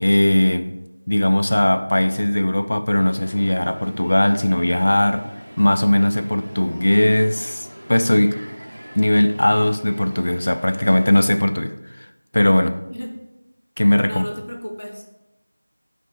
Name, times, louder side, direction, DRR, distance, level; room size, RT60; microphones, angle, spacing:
voice 1, 0.0-0.7 1.1-5.3 5.6-8.4 9.0-12.1 12.3-12.8 13.8-14.3, left 1 dB, 40° left, 9 dB, 0.3 m, -18 dB
Crowd, 3.1-11.4, equal, 65° right, 0.8 m, -41 dB
voice 2, 14.0-15.0, equal, 55° left, 4 dB, 0.7 m, -33 dB
5.9 x 3.3 x 4.9 m, 0.94 s
figure-of-eight pair, 180°, 0 cm